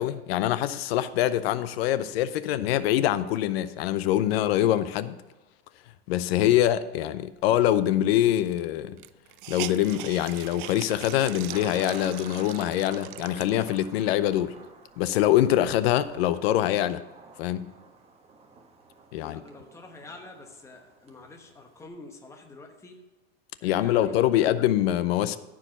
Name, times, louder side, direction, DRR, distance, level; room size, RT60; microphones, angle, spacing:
voice 1, 0.0-5.2 6.1-9.0 9.5-14.5 15.0-17.0 17.4-17.7 19.1-19.4 23.6-25.4, left 12 dB, 70° left, 0.7 m, -24 dB
Hiss, 8.1-8.2 8.4-8.5 9.0-14.0 14.6-14.7 15.0-16.4, right 17 dB, 55° right, 0.4 m, -41 dB
Thunder, 9.6-21.9, right 3 dB, 20° right, 1.4 m, -50 dB
voice 2, 19.2-23.0 23.6-24.3, left 3 dB, 10° left, 1.1 m, -47 dB
14.0 x 4.9 x 6.0 m
supercardioid pair, 135°, 32 cm